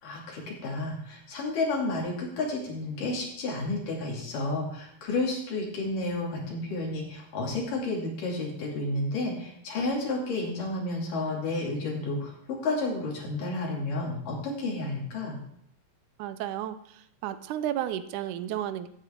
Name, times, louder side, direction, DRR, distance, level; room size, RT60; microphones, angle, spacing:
voice 1, 0.0-15.4, left 2 dB, 65° left, -2 dB, 4.2 m, -31 dB
voice 2, 16.2-18.9, right 11 dB, 80° right, 12 dB, 1.8 m, -33 dB
14.5 x 9.1 x 3.7 m, 0.69 s
omnidirectional pair, 4.2 m